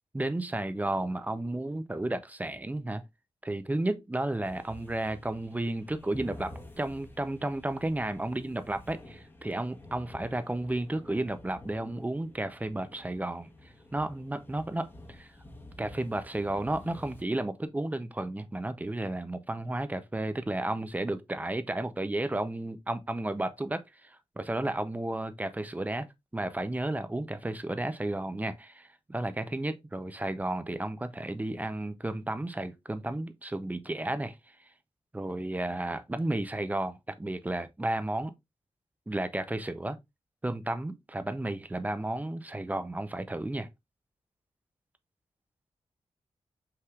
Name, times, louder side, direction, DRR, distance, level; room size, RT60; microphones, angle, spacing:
voice 1, 0.1-3.0 3.4-6.5 6.8-13.5 13.9-15.3 15.8-26.1 26.3-34.4 35.1-38.3 39.1-40.0 40.4-43.7, right 1 dB, 15° right, 0.5 m, -33 dB
sound 1, 4.4-17.2, left 1 dB, 20° left, 1.1 m, -50 dB
5.6 x 3.5 x 2.3 m
wide cardioid pair, 100°, 11 cm